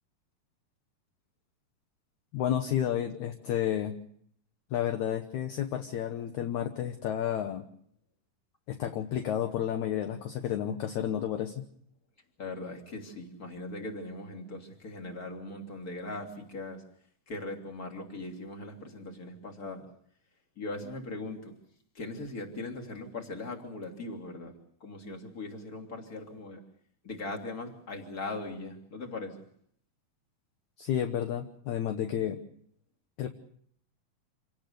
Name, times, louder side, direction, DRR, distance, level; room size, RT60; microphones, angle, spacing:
voice 1, 2.3-4.0 4.7-7.7 8.7-11.5 30.8-32.4 33.2-33.3, left 10 dB, 65° left, 7 dB, 1.9 m, -31 dB
voice 2, 12.4-16.8 17.3-19.9 20.6-21.5 21.9-24.5 24.8-26.6 27.0-29.4, left 2 dB, 25° left, 3 dB, 3.0 m, -40 dB
27.5 x 18.0 x 6.7 m, 0.67 s
omnidirectional pair, 4.6 m